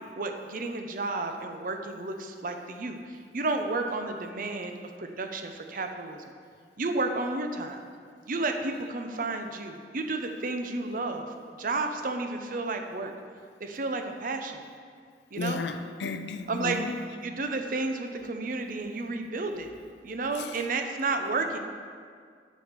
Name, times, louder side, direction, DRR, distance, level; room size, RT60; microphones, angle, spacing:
voice 1, 0.2-6.3 6.8-7.8 8.3-13.1 13.6-14.6 15.3-15.6 16.5-16.8 17.2-19.7 20.0-21.6, right 3 dB, 50° right, 5 dB, 0.7 m, -32 dB
voice 2, 15.3-17.2 20.3-20.7, left 4 dB, 75° left, 9 dB, 0.5 m, -34 dB
7.5 x 5.3 x 6.5 m, 2.1 s
head